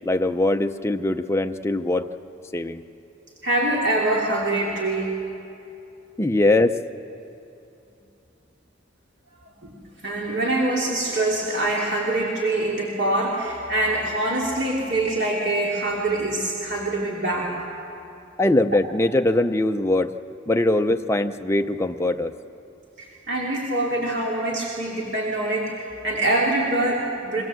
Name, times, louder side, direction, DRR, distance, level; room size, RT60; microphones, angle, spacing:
voice 1, 0.0-2.1 2.5-2.8 6.2-6.8 18.4-20.1 20.5-22.3, left 2 dB, 15° left, 6 dB, 0.6 m, -21 dB
voice 2, 3.4-5.2 9.6-9.7 10.0-17.5 23.0-27.4, right 2 dB, 60° right, -4 dB, 2.9 m, -24 dB
24.5 x 20.0 x 7.7 m, 2.7 s
head